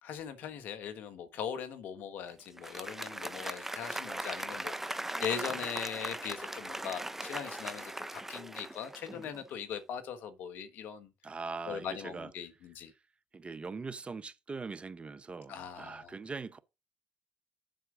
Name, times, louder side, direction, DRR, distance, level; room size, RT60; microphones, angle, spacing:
voice 1, 0.0-11.1 11.7-12.9 15.5-16.1, left 8 dB, 80° left, 1.4 m, -40 dB
Applause, 2.5-9.4, right 1 dB, 10° right, 0.9 m, -39 dB
voice 2, 11.2-12.3 13.3-16.6, right 4 dB, 40° right, 1.0 m, -41 dB
7.7 x 6.2 x 4.9 m
supercardioid pair, 55°, 3 cm